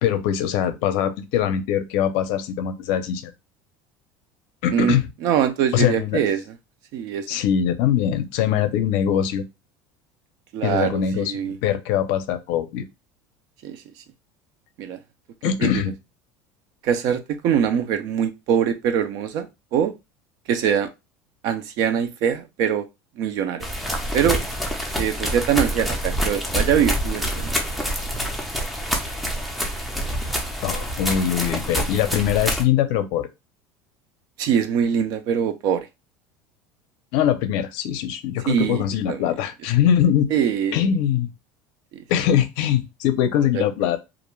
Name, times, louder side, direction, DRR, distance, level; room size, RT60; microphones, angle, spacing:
voice 1, 0.0-3.3 4.6-5.0 5.7-6.2 7.3-9.4 10.6-12.9 15.4-15.9 30.6-33.3 37.1-40.3 40.7-41.3 42.1-44.0, left 9 dB, 70° left, 0.5 m, -22 dB
voice 2, 4.7-6.4 6.9-7.3 10.5-11.6 13.6-13.8 14.8-15.0 15.6-15.8 16.8-19.9 20.5-20.9 21.4-22.9 23.2-23.7 24.1-24.4 25.0-27.5 34.4-35.9 38.4-39.2 40.3-40.8 41.9-42.0 43.5-43.6, right 8 dB, 55° right, 0.4 m, -23 dB
sound 1, 23.6-32.6, equal, ahead, 0.4 m, -26 dB
2.4 x 2.2 x 3.0 m
cardioid pair, 155°, 7 cm